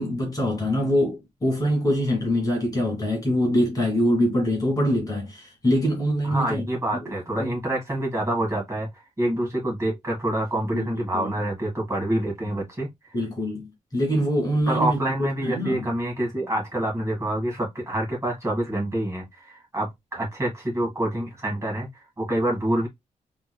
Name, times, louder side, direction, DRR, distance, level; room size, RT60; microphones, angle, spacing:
voice 1, 0.0-6.6 7.0-7.1 7.4-7.5 10.7-10.9 11.1-11.3 13.1-13.7 13.9-15.9, equal, 25° left, 1.5 m, -24 dB
voice 2, 6.2-8.9 9.2-12.9 14.7-22.9, right 1 dB, 20° right, 1.6 m, -27 dB
3.4 x 2.9 x 2.2 m
wide cardioid pair, 135°, 13 cm